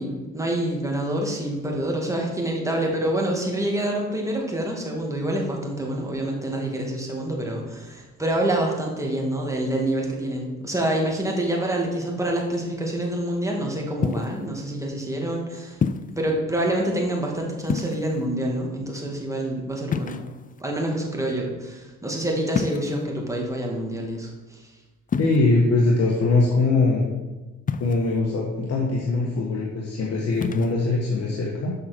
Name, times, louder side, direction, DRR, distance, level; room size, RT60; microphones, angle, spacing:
voice 1, 0.0-15.8 16.1-20.3 20.6-24.7, right 1 dB, 10° right, -1 dB, 2.2 m, -27 dB
sound 1, 14.0-14.5 15.8-16.2 17.6-18.3 19.9-20.6 22.5-23.1 25.1-25.4 27.7-28.2 30.3-30.7, left 6 dB, 30° left, 0.5 m, -27 dB
voice 2, 25.2-27.0 27.8-31.7, left 3 dB, 55° left, -2 dB, 1.6 m, -22 dB
7.4 x 5.9 x 6.1 m, 1.2 s
cardioid pair, 90°, 30 cm